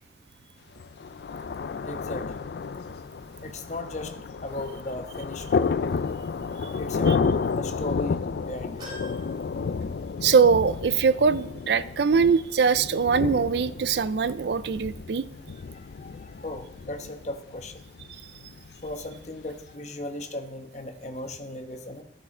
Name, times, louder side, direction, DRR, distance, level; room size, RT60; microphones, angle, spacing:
Thunder, 0.8-19.7, left 5 dB, 70° left, 0.4 m, -31 dB
voice 1, 1.8-2.5 3.4-4.1 4.4-5.8 6.7-8.8 15.7-17.9 18.8-22.0, left 1 dB, 40° left, 5 dB, 1.1 m, -37 dB
sound 1, 8.8-10.4 10.9-11.0 12.2-12.3, equal, 25° right, 3.4 m, -46 dB
voice 2, 10.2-15.3, right 6 dB, 70° right, 16 dB, 0.4 m, -22 dB
14.0 x 6.1 x 4.3 m, 0.72 s
head